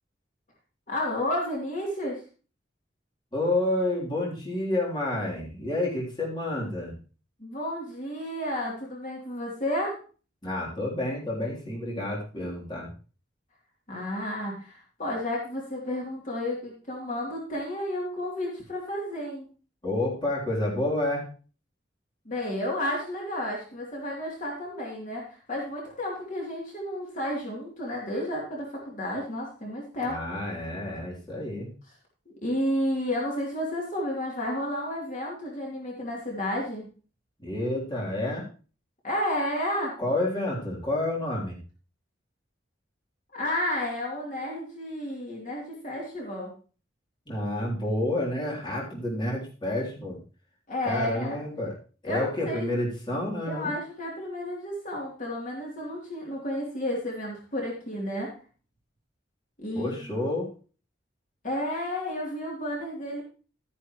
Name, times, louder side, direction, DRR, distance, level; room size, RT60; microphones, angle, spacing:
voice 1, 0.9-2.2 7.4-10.0 13.9-19.5 22.2-30.2 32.4-36.9 39.0-40.0 43.3-46.5 50.7-51.4 52.0-52.7 53.5-58.3 59.6-60.3 61.4-63.2, left 1 dB, 45° left, -3 dB, 3.2 m, -31 dB
voice 2, 3.3-6.9 10.4-12.9 19.8-21.3 30.0-31.7 37.4-38.4 40.0-41.6 47.3-50.2 50.9-51.8 52.0-53.7 59.7-60.5, left 1 dB, 25° left, -4 dB, 3.6 m, -29 dB
13.5 x 9.7 x 3.1 m, 0.36 s
head